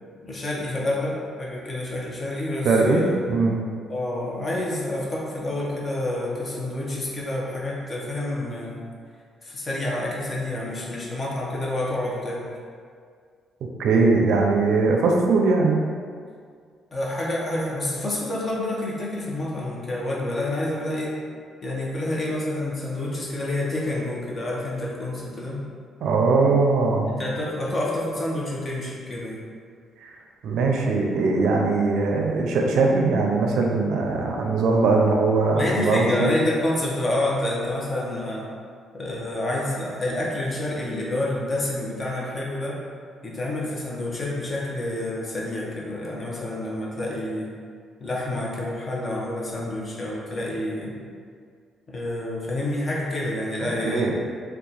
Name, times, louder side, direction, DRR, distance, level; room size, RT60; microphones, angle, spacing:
voice 1, 0.2-3.2 3.9-8.8 9.4-12.4 16.9-21.2 21.6-25.7 27.1-29.4 35.6-38.5 38.9-42.8 43.2-47.5 48.0-51.0 51.9-54.1, left 1 dB, 35° left, -4 dB, 0.8 m, -28 dB
voice 2, 2.6-3.0 3.3-3.6 13.8-15.8 26.0-27.1 30.0-30.1 30.4-36.3 53.8-54.1, right 3 dB, 75° right, 0 dB, 0.4 m, -20 dB
2.9 x 2.3 x 3.9 m, 2.1 s
cardioid pair, 90°, 0 cm